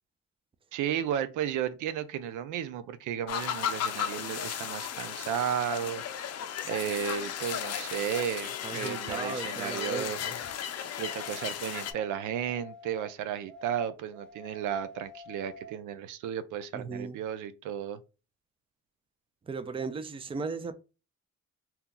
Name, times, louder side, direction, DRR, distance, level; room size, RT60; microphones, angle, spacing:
voice 1, 0.7-6.0 6.6-10.2 11.0-18.0, right 9 dB, 85° right, 0.5 m, -33 dB
sound 1, 3.3-11.9, left 9 dB, 55° left, 0.5 m, -35 dB
voice 2, 8.6-10.4 16.7-17.2 19.5-20.7, right 4 dB, 20° right, 0.4 m, -36 dB
sound 2, 11.0-13.1 13.5-15.8, left 1 dB, 5° left, 1.0 m, -48 dB
2.8 x 2.3 x 3.7 m
cardioid pair, 90°, 30 cm